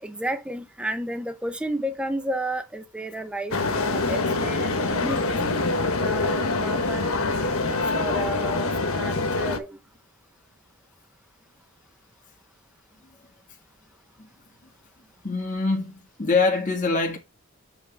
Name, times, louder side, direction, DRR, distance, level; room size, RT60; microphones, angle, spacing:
voice 1, 0.0-5.4 6.0-7.0 7.4-9.8, right 1 dB, 5° right, 0.7 m, -32 dB
sound 1, 3.5-9.6, left 3 dB, 80° left, 1.2 m, -25 dB
voice 2, 15.2-17.2, left 3 dB, 35° left, 1.6 m, -24 dB
8.0 x 3.5 x 5.1 m
head